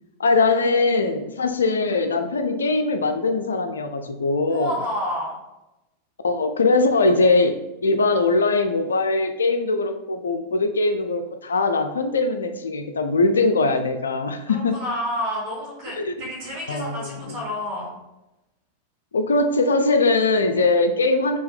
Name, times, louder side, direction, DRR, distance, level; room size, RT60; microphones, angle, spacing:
voice 1, 0.2-4.7 6.2-14.7 16.0-16.1 16.7-17.4 19.1-21.4, left 3 dB, 70° left, 8 dB, 0.4 m, -21 dB
voice 2, 4.5-5.4 14.5-18.0, left 1 dB, 45° right, -6 dB, 1.3 m, -29 dB
4.3 x 2.8 x 3.7 m, 0.96 s
figure-of-eight pair, 90°, 0 cm